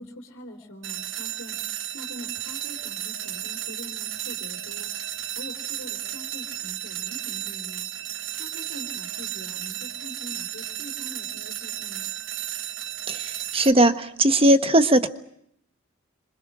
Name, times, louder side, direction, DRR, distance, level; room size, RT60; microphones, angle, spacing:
voice 1, 0.0-4.9 5.3-7.9 8.4-12.1, left 1 dB, 65° left, 3 dB, 3.5 m, -43 dB
sound 1, 0.8-13.7, right 11 dB, 55° right, 1.2 m, -33 dB
voice 2, 13.1-15.1, right 1 dB, 25° right, 10 dB, 1.3 m, -19 dB
28.0 x 26.0 x 6.2 m, 0.73 s
head